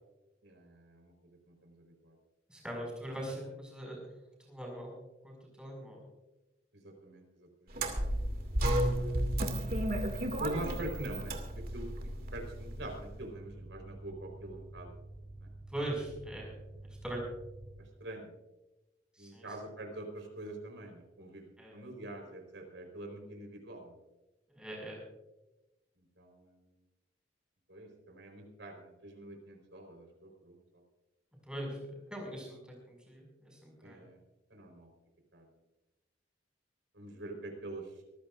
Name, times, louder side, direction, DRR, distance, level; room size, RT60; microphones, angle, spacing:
voice 1, 0.4-2.2 6.7-7.7 8.9-9.8 10.4-11.3 11.7-11.9 12.3-15.0 15.4-15.5 17.8-18.4 19.2-24.0 26.0-26.7 27.7-30.6 33.8-34.2 34.5-34.9 35.3-35.4 36.9-37.9, right 1 dB, 75° right, 3 dB, 4.4 m, -45 dB
voice 2, 2.5-4.1 4.5-5.0 5.2-6.0 15.7-17.2 19.2-19.5 21.6-21.8 24.5-25.0 31.4-34.0, right 1 dB, 5° right, -1 dB, 5.8 m, -41 dB
sound 1, 7.7-17.7, right 2 dB, 85° left, 5.4 m, -49 dB
sound 2, 7.7-13.0, right 1 dB, 50° right, 2.4 m, -33 dB
25.0 x 15.0 x 2.6 m, 1.0 s
head